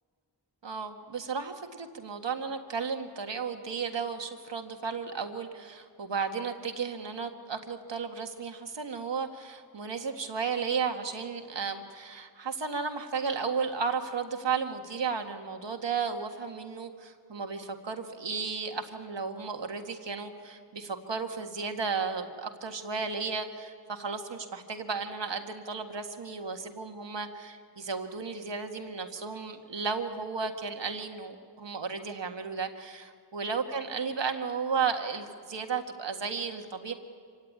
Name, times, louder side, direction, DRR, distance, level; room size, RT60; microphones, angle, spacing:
voice 1, 0.6-36.9, right 5 dB, 85° right, 5 dB, 1.8 m, -34 dB
26.0 x 16.5 x 9.6 m, 2.2 s
wide cardioid pair, 75°, 42 cm